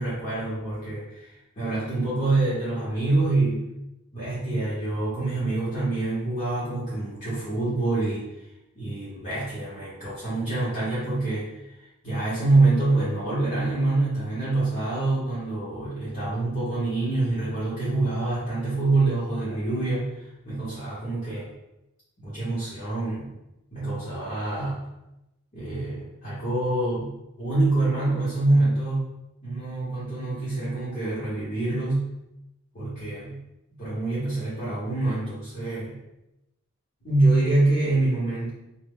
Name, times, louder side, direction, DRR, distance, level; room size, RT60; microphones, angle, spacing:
voice 1, 0.0-3.6 4.1-8.3 8.7-11.7 12.0-21.5 22.2-23.3 23.7-24.9 25.5-29.1 29.4-32.1 32.7-33.4 33.8-35.9 37.0-38.5, right 2 dB, 35° left, -10 dB, 0.8 m, -26 dB
2.1 x 2.0 x 3.5 m, 0.90 s
head